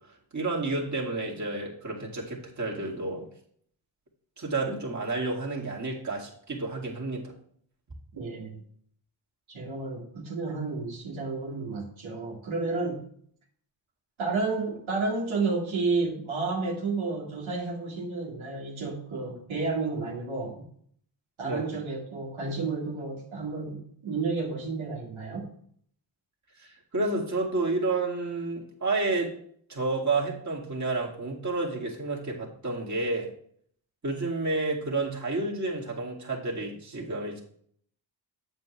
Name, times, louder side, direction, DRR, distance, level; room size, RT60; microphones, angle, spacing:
voice 1, 0.3-3.2 4.4-7.3 21.4-21.7 26.6-29.4 29.7-33.3 34.0-37.4, right 3 dB, 35° right, -3 dB, 2.5 m, -30 dB
voice 2, 8.1-8.6 9.5-13.0 14.2-20.6 21.4-25.4, right 3 dB, 75° right, -3 dB, 2.2 m, -31 dB
7.9 x 7.7 x 3.2 m, 0.62 s
cardioid pair, 50°, 48 cm